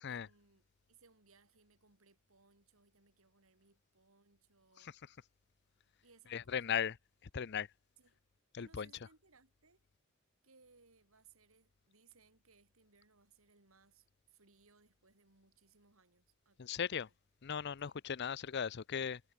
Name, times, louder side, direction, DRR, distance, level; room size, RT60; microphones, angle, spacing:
voice 1, 0.1-5.0 6.0-6.8 8.0-8.2 8.6-9.9 10.4-17.1 17.8-18.0, right 4 dB, 85° right, 3.3 m, -68 dB
voice 2, 6.3-6.9 7.3-7.7 8.5-8.9 16.6-17.1 17.4-19.2, left 7 dB, 55° left, 0.5 m, -37 dB
head